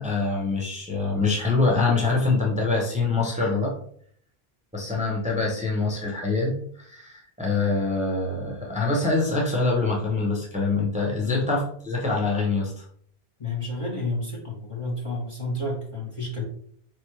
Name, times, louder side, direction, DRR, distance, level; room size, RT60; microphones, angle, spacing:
voice 1, 0.0-3.7 4.7-12.8, left 3 dB, 10° right, -2 dB, 0.7 m, -25 dB
voice 2, 13.4-16.4, left 2 dB, 35° left, -2 dB, 0.8 m, -30 dB
4.1 x 3.3 x 3.2 m, 0.62 s
omnidirectional pair, 1.1 m